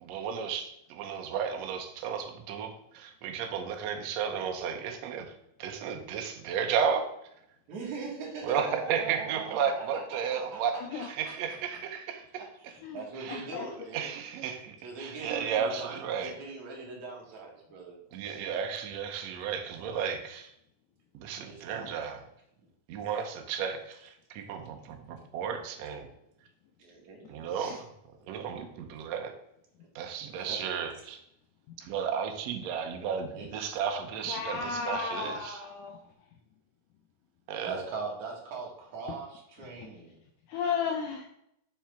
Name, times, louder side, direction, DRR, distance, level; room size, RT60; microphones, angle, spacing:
voice 1, 0.0-5.3 5.6-7.1 8.4-12.2 13.2-13.5 13.9-16.3 18.1-20.5 21.1-22.2 22.9-26.1 27.3-27.9 28.3-29.3 29.9-31.2 31.8-35.6 37.5-37.7, right 7 dB, 80° right, 4 dB, 1.5 m, -33 dB
voice 2, 7.7-11.3 12.4-14.1 14.8-18.5 21.4-22.0 23.0-23.2 26.8-27.8 28.7-28.8 29.8-29.9 30.3-30.6 33.3-33.5 37.6-40.2, right 4 dB, 60° right, -2 dB, 2.8 m, -41 dB
voice 3, 10.7-11.1 12.8-13.0 13.3-13.9 34.2-36.0 39.8-39.9 40.5-41.3, left 6 dB, 80° left, 3 dB, 1.8 m, -34 dB
7.4 x 6.2 x 3.5 m, 0.77 s
omnidirectional pair, 4.2 m